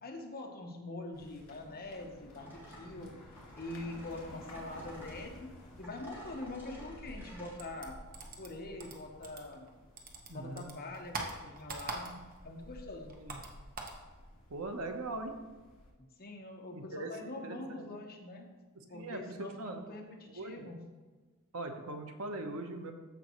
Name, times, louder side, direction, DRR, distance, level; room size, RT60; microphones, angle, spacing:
voice 1, 0.0-3.1 3.5-5.5 5.8-7.9 8.4-9.7 10.3-12.1 12.4-13.2 16.2-18.5 18.9-20.8, left 2 dB, 45° left, 1 dB, 1.2 m, -44 dB
sound 1, 1.1-15.9, left 1 dB, 80° left, 2.6 m, -54 dB
sound 2, 2.4-7.6, equal, 10° right, 2.8 m, -53 dB
sound 3, 7.6-9.7 10.0-12.5 12.7-14.0, right 3 dB, 40° right, 1.2 m, -43 dB
voice 2, 10.3-10.7 13.2-13.4 14.5-15.3 16.7-17.9 18.9-19.8 20.4-20.7 21.5-22.9, right 2 dB, 80° right, 5 dB, 1.0 m, -41 dB
14.0 x 5.3 x 3.1 m, 1.3 s
head